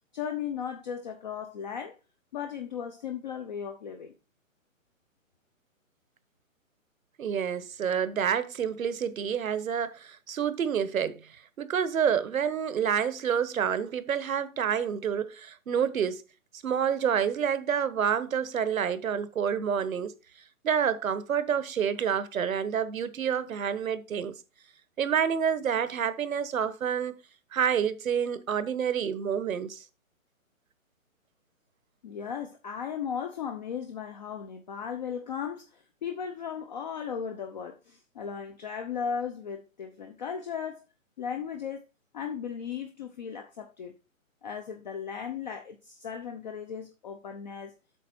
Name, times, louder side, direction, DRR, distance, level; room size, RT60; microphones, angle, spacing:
voice 1, 0.1-2.0 2.3-4.1 32.0-40.8 41.2-41.8 42.1-43.9 44.4-47.7, left 7 dB, 35° left, 0.7 m, -36 dB
voice 2, 7.2-16.2 16.6-20.1 20.6-24.4 25.0-27.1 27.5-29.8, right 8 dB, 75° right, 1.2 m, -28 dB
8.4 x 6.1 x 4.3 m
hypercardioid pair, 160°, 41 cm